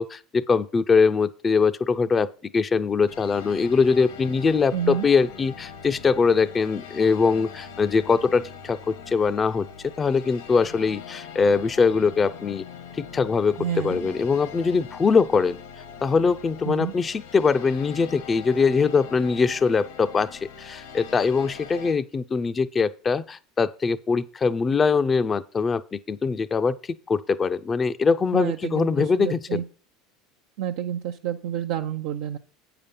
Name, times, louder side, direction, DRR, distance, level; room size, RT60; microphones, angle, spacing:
voice 1, 0.0-2.3 2.5-12.6 12.9-15.6 16.0-29.6, left 5 dB, 30° left, 12 dB, 0.6 m, -22 dB
sound 1, 3.1-21.9, left 7 dB, 75° left, 1.5 m, -42 dB
voice 2, 4.7-5.1 13.6-14.1 16.6-16.9 28.3-29.6 30.6-32.4, right 10 dB, 70° right, 3 dB, 0.6 m, -29 dB
8.6 x 6.9 x 5.4 m, 0.38 s
hypercardioid pair, 80°, 0 cm